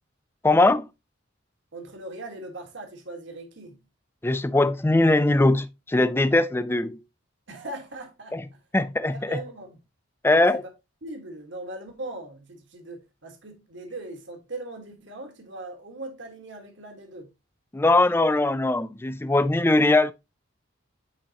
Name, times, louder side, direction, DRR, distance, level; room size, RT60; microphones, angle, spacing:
voice 1, 0.4-0.9 4.2-7.0 8.3-8.4 8.7-9.4 10.2-10.6 17.7-20.1, left 2 dB, 10° left, 0.3 m, -21 dB
voice 2, 1.7-3.8 7.5-8.4 9.1-9.8 10.5-10.7 11.0-17.3, right 2 dB, 65° right, 1.6 m, -39 dB
9.7 x 4.0 x 2.8 m
head